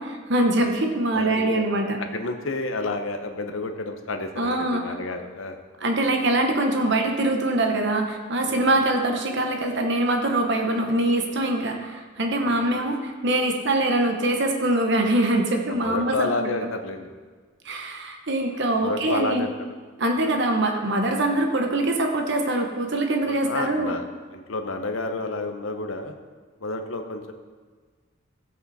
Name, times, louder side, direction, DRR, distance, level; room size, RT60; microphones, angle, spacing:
voice 1, 0.0-2.0 4.4-5.0 5.8-16.5 17.6-19.5 20.0-24.0, right 1 dB, 60° right, 3 dB, 1.1 m, -23 dB
voice 2, 1.1-1.6 2.0-5.6 8.5-8.7 12.4-12.6 15.7-17.1 18.8-19.5 20.1-20.2 23.2-24.0 24.3-26.1 26.6-27.3, left 3 dB, 85° left, 5 dB, 1.0 m, -30 dB
14.5 x 8.3 x 4.2 m, 1.5 s
head